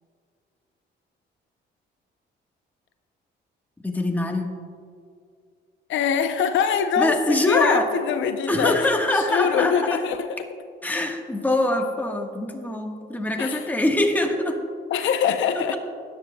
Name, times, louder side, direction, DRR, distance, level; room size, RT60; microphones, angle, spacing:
voice 1, 3.8-4.5 7.0-7.8 8.5-10.0 10.8-14.6, left 1 dB, 10° left, 2 dB, 1.3 m, -23 dB
voice 2, 5.9-10.4 13.4-13.7 14.9-15.7, left 7 dB, 75° left, 8 dB, 0.6 m, -24 dB
16.0 x 10.0 x 2.2 m, 2.3 s
cardioid pair, 90°, 20 cm